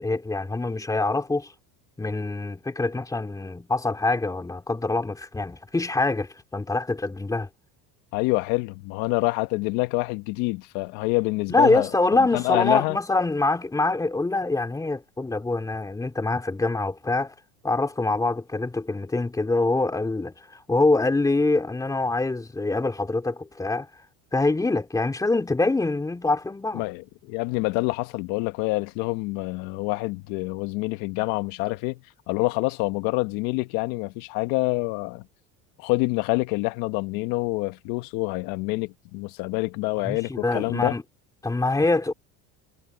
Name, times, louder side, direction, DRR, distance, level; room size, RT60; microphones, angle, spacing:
voice 1, 0.0-1.5 2.0-7.5 11.5-17.3 17.6-23.9 24.3-26.8 40.0-41.0 41.4-42.1, left 2 dB, 10° left, 2.8 m, -25 dB
voice 2, 8.1-11.9 12.2-13.0 26.7-32.0 32.3-35.2 35.8-41.0, left 23 dB, 70° left, 1.1 m, -27 dB
cardioid pair, 140°, 37 cm